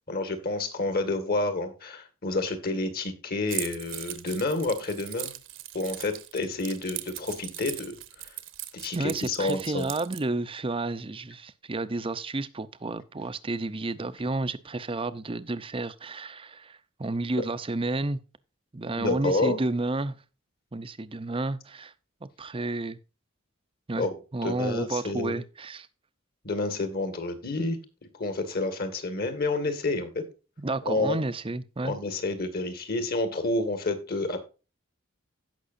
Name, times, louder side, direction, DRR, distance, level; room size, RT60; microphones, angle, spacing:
voice 1, 0.1-5.3 5.7-8.0 8.2-8.3 8.7-9.9 18.9-19.6 24.0-24.1 24.4-25.3 26.4-27.8 28.1-30.2 30.8-31.2 31.8-34.4, left 2 dB, 50° left, 2.0 m, -29 dB
Keys jangling, 3.5-10.2, right 14 dB, 65° right, 1.1 m, -39 dB
voice 2, 8.9-18.2 18.7-20.2 20.7-21.9 22.2-23.0 23.9-24.1 24.3-25.9 30.6-32.0, right 2 dB, 25° right, 0.6 m, -31 dB
16.5 x 6.0 x 2.6 m
head